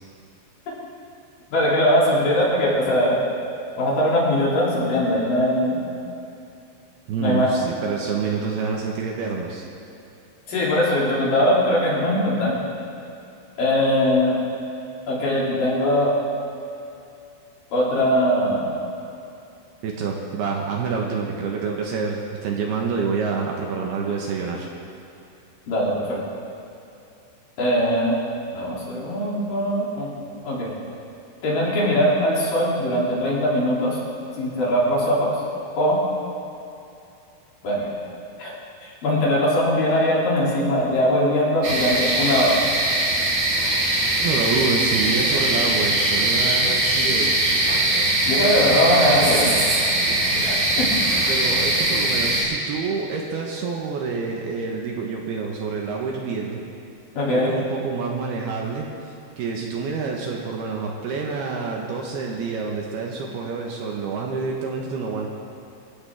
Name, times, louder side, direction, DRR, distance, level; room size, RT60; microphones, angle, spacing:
voice 1, 1.5-3.2 3.8-5.8 7.2-7.5 10.5-12.7 13.6-14.4 15.1-16.2 17.7-18.7 25.7-26.2 27.6-28.2 28.5-30.1 30.4-30.7 31.4-34.0 34.4-35.4 35.8-36.0 37.6-37.9 38.4-38.5 38.8-42.6 48.3-49.6 50.3-50.9 57.1-57.5, equal, 50° left, -6 dB, 4.4 m, -21 dB
voice 2, 7.1-9.6 19.8-24.7 43.9-47.3 51.3-56.6 57.3-65.3, right 5 dB, 70° right, -1 dB, 2.9 m, -27 dB
sound 1, 41.6-52.4, right 1 dB, 45° right, 4.3 m, -21 dB
26.5 x 14.5 x 3.6 m, 2.8 s
omnidirectional pair, 5.4 m